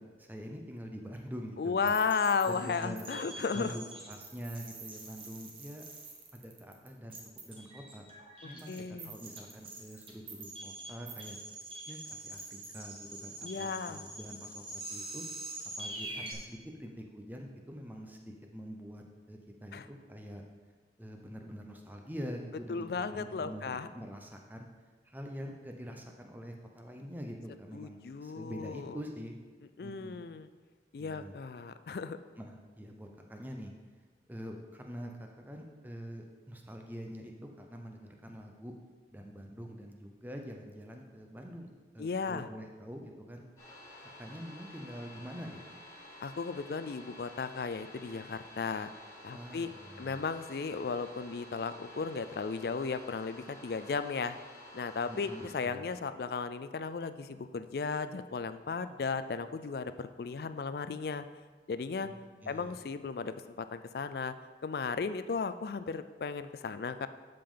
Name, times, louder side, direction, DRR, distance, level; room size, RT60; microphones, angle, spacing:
voice 1, 0.2-1.9 2.4-3.1 3.5-5.8 6.3-7.2 7.4-8.0 8.4-11.4 11.9-15.3 15.8-20.4 21.0-24.7 25.0-29.4 29.8-30.3 31.0-31.3 32.4-33.7 34.3-38.7 39.1-43.4 44.0-45.6 49.3-50.2 55.1-55.8 62.0-62.8, equal, 10° right, 2 dB, 0.7 m, -45 dB
voice 2, 1.6-3.8 8.4-9.2 13.4-14.0 19.7-19.9 22.7-23.9 27.7-29.0 29.8-30.5 30.9-32.2 42.0-42.5 46.2-48.9 49.2-49.7 50.0-54.4 54.7-61.2 61.7-62.1 62.5-64.3 64.6-67.1, left 5 dB, 55° left, 11 dB, 0.4 m, -35 dB
sound 1, 1.9-16.3, right 2 dB, 30° right, 1.2 m, -45 dB
sound 2, 43.6-55.5, left 1 dB, 20° left, 2.4 m, -51 dB
12.5 x 5.2 x 3.8 m, 1.4 s
head